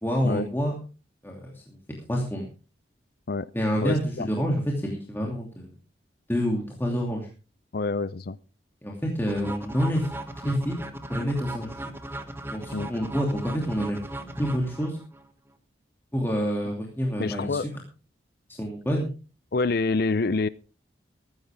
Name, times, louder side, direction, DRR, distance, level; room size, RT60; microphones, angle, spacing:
voice 1, 0.0-0.7 1.2-1.8 2.1-2.4 3.5-5.7 6.3-7.3 8.8-10.1 10.4-11.9 12.5-14.0 14.4-15.0 16.1-17.6 18.6-19.1, equal, 10° left, -1 dB, 2.7 m, -27 dB
voice 2, 3.8-4.3 7.7-8.4 12.7-12.9 17.2-17.7 19.5-20.5, left 3 dB, 55° left, 17 dB, 0.5 m, -27 dB
sound 1, 9.3-15.2, right 1 dB, 15° right, 1.3 m, -37 dB
14.5 x 14.5 x 3.6 m, 0.35 s
head